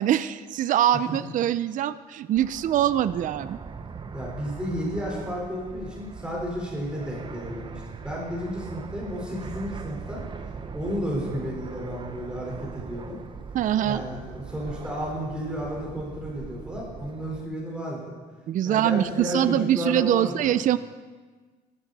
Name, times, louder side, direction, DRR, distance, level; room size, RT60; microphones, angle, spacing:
voice 1, 0.0-3.6 13.5-14.0 18.5-20.8, right 11 dB, 50° right, 14 dB, 0.5 m, -23 dB
Fixed-wing aircraft airplane, 2.3-17.5, right 5 dB, 30° right, 0.8 m, -40 dB
voice 2, 4.1-10.2 10.7-13.2 13.8-18.2 18.6-20.5, equal, 5° right, -4 dB, 4.2 m, -32 dB
15.5 x 13.0 x 4.1 m, 1.4 s
cardioid pair, 110°, 17 cm